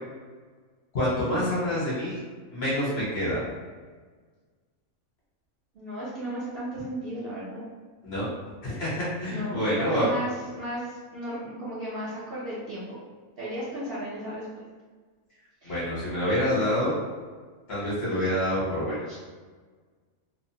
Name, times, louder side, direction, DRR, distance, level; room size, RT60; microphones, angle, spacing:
voice 1, 0.9-2.2 2.5-3.5 8.0-8.3 8.6-10.1 15.6-17.0 17.7-19.0, equal, 50° left, -8 dB, 1.1 m, -27 dB
voice 2, 5.7-7.6 9.3-12.9 13.4-14.4 15.6-15.8 19.1-19.2, right 1 dB, 55° right, -10 dB, 0.7 m, -35 dB
2.6 x 2.0 x 2.7 m, 1.5 s
omnidirectional pair, 1.5 m